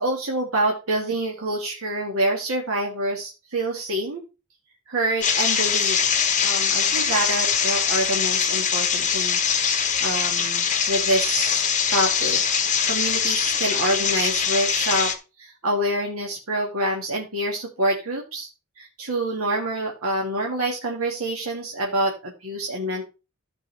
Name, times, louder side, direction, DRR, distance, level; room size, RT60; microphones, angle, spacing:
voice 1, 0.0-4.2 4.9-6.0 6.4-11.6 11.9-12.4 12.9-15.1 15.4-18.5 18.8-23.1, right 1 dB, 70° right, -1 dB, 1.8 m, -26 dB
sound 1, 5.2-15.1, left 7 dB, 35° left, 1.2 m, -22 dB
14.0 x 5.5 x 3.3 m, 0.30 s
head